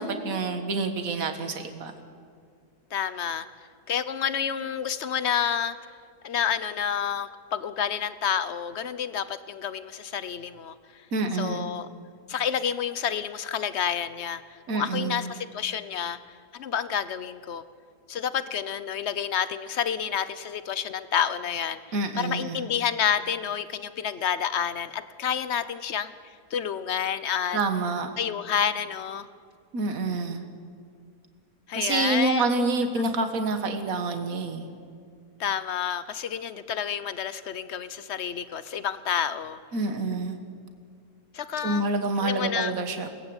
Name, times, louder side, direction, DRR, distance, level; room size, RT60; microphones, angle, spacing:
voice 1, 0.0-1.9 11.1-11.8 14.7-15.3 21.9-22.7 27.5-28.1 29.7-30.4 31.7-34.7 39.7-40.4 41.6-43.1, right 3 dB, 65° right, 7 dB, 2.0 m, -27 dB
voice 2, 2.9-3.5 3.9-5.8 6.2-11.0 11.3-11.9 12.3-16.2 16.5-17.6 18.1-21.8 22.2-26.1 26.5-27.6 28.2-29.3 31.7-32.5 35.4-39.6 41.3-41.9 42.2-42.8, left 8 dB, 50° left, 14 dB, 1.0 m, -29 dB
23.5 x 18.5 x 8.9 m, 2.2 s
omnidirectional pair, 1.6 m